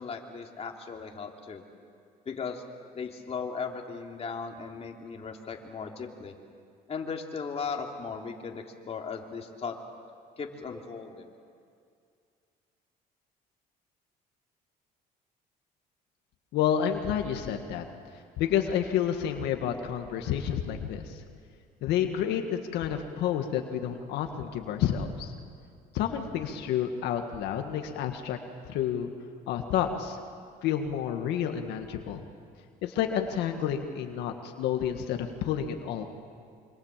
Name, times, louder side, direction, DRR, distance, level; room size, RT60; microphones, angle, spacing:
voice 1, 0.0-1.6 2.3-2.6 2.9-6.3 6.9-9.8 10.4-11.3, left 5 dB, 35° left, 1 dB, 3.0 m, -37 dB
voice 2, 16.5-17.8 18.4-21.2 21.8-25.3 25.9-28.4 28.7-29.1 29.5-30.2 30.6-32.2 32.8-36.1, left 9 dB, 85° left, 5 dB, 1.8 m, -29 dB
26.0 x 26.0 x 7.5 m, 2.3 s
cardioid pair, 110°, 17 cm